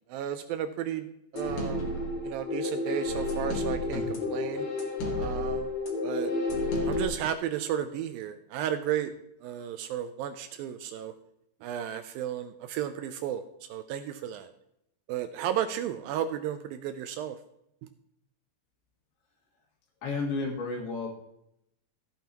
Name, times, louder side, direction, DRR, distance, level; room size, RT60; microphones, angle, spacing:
voice 1, 0.1-1.1 1.3-2.0 2.2-4.7 5.2-5.7 6.0-6.3 6.8-9.1 9.4-11.1 11.6-13.4 13.7-14.5 15.1-17.4, right 10 dB, 80° right, 10 dB, 2.2 m, -33 dB
sound 1, 1.4-7.1, left 2 dB, 55° left, 2.8 m, -31 dB
voice 2, 20.0-21.1, left 3 dB, 80° left, 0 dB, 3.9 m, -31 dB
14.5 x 9.1 x 2.9 m, 0.79 s
omnidirectional pair, 4.5 m